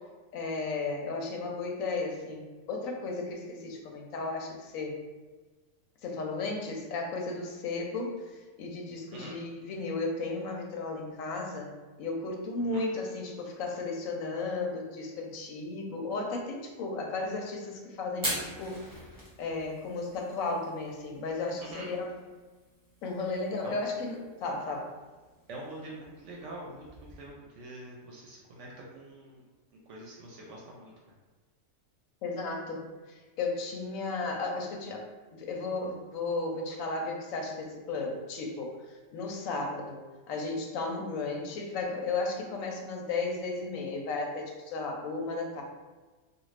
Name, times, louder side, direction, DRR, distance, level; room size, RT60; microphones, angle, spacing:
voice 1, 0.3-5.0 6.0-8.2 8.6-11.7 12.0-18.8 19.4-22.1 23.0-24.9 32.2-35.1 35.3-45.6, left 3 dB, 90° left, 1 dB, 1.0 m, -34 dB
Fire, 18.1-27.3, equal, 20° right, 0.9 m, -43 dB
voice 2, 21.6-21.9 23.6-23.8 25.5-29.4 29.9-30.9, right 1 dB, 70° right, -3 dB, 0.9 m, -45 dB
2.5 x 2.3 x 3.1 m, 1.3 s
omnidirectional pair, 1.3 m